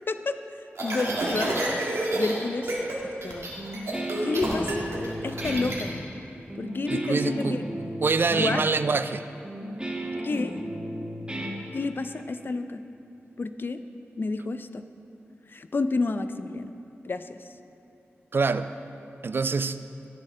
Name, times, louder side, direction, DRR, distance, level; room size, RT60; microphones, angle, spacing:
voice 1, 0.1-0.4 0.8-1.5 2.1-2.8 3.2-3.5 4.2-4.9 5.2-5.9 6.6-7.6 8.3-8.6 10.2-10.6 11.7-12.8 13.4-13.8 14.2-14.8 15.5-16.7 17.0-17.4, left 3 dB, 50° left, 9 dB, 0.5 m, -29 dB
sound 1, 0.8-2.3 2.6-3.0 3.2-5.8, right 1 dB, 85° right, 2.0 m, -29 dB
Guitar, 3.6-12.2, right 1 dB, 20° right, 1.2 m, -34 dB
voice 2, 6.9-7.6 8.0-9.2 18.3-18.7 19.2-19.8, right 4 dB, 55° right, 12 dB, 0.3 m, -25 dB
17.0 x 7.3 x 3.3 m, 2.9 s
wide cardioid pair, 70°, 5 cm